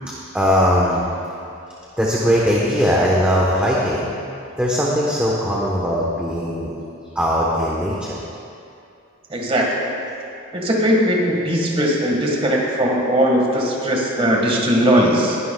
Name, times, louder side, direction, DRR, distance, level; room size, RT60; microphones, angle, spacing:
voice 1, 0.3-1.0 2.0-4.1 4.6-6.7 7.1-8.2, equal, 5° right, -5 dB, 1.0 m, -19 dB
voice 2, 9.3-9.8 10.5-15.4, equal, 25° right, -1 dB, 1.6 m, -19 dB
20.0 x 11.5 x 2.3 m, 2.6 s
head